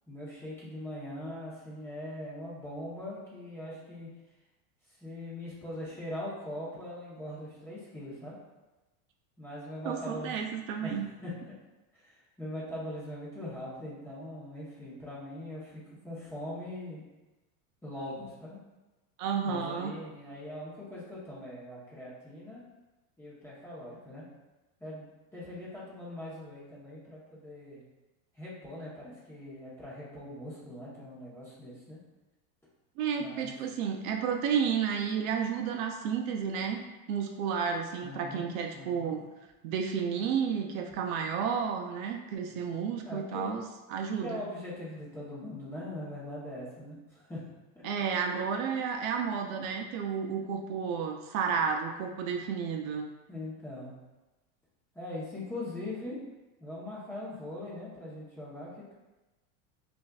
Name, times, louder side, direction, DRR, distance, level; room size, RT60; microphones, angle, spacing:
voice 1, 0.1-4.1 5.0-8.4 9.4-10.3 10.8-11.3 11.9-17.0 17.8-18.6 19.4-22.6 23.2-24.2 24.8-25.1 25.3-27.8 28.3-32.0 33.2-33.5 38.0-38.5 38.7-39.2 43.0-43.6 44.2-47.4 47.7-47.8 53.3-53.9 54.9-56.2 56.6-58.9, left 1 dB, 5° left, -9 dB, 0.9 m, -41 dB
voice 2, 9.8-11.1 19.2-19.9 33.0-39.2 39.6-44.4 47.8-53.1, right 6 dB, 65° right, 3 dB, 0.5 m, -32 dB
5.2 x 2.6 x 2.3 m, 1.1 s
supercardioid pair, 150°, 44 cm